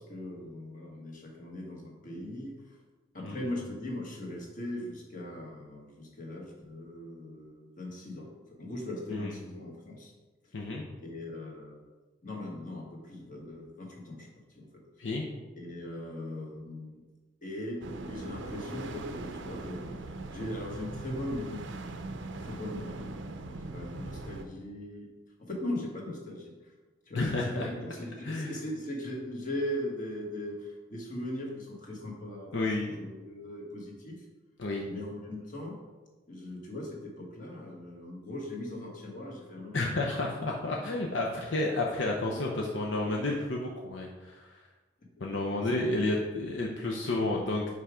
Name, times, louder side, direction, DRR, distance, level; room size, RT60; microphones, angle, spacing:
voice 1, 0.0-2.8 3.1-10.1 11.0-11.8 12.2-14.7 15.0-15.1 15.6-17.0 17.4-20.0 20.3-21.7 22.4-23.2 23.4-25.1 25.4-26.7 27.0-34.2 34.9-35.8 36.3-40.4 45.6-45.8, left 1 dB, 45° left, -1 dB, 1.5 m, -39 dB
voice 2, 10.5-10.8 15.0-15.3 27.1-27.7 28.2-28.5 32.5-32.9 34.6-34.8 39.7-44.6 45.2-47.7, left 2 dB, 70° left, -1 dB, 0.7 m, -31 dB
sound 1, 17.8-24.4, right 2 dB, 70° right, 0.6 m, -40 dB
5.6 x 4.7 x 5.0 m, 1.2 s
head